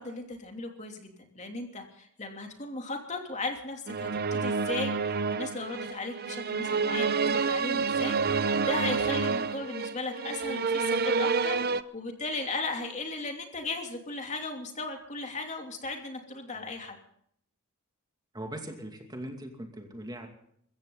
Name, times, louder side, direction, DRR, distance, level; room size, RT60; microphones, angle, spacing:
voice 1, 0.0-17.0, left 3 dB, 35° left, 3 dB, 3.0 m, -36 dB
sound 1, 3.9-11.8, right 4 dB, 45° right, 0.7 m, -28 dB
voice 2, 18.3-20.3, right 1 dB, 20° right, 3 dB, 2.5 m, -40 dB
23.5 x 15.0 x 4.0 m, 0.67 s
head